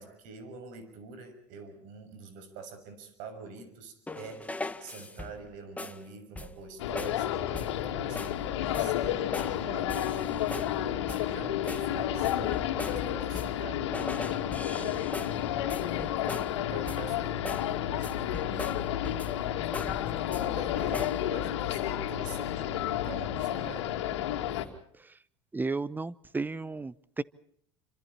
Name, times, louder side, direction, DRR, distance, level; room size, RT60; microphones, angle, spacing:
voice 1, 0.0-18.9 19.5-24.0, right 4 dB, 60° right, 9 dB, 6.5 m, -46 dB
sound 1, 4.1-5.5 5.8-6.0 6.4-6.7 7.0-7.2 7.5-7.8 8.2-8.4 8.7-9.6 9.9-10.8 11.1-11.4 11.7-13.7 13.9-16.6 16.9-17.2 17.4-17.7 18.0-19.4 19.7-20.5 20.8-21.2, left 2 dB, 10° left, 1.7 m, -40 dB
sound 2, 6.8-24.7, left 11 dB, 80° left, 2.7 m, -31 dB
voice 2, 25.5-27.2, right 3 dB, 15° right, 21 dB, 0.9 m, -33 dB
28.0 x 26.5 x 4.3 m, 0.66 s
hypercardioid pair, 85°, 15 cm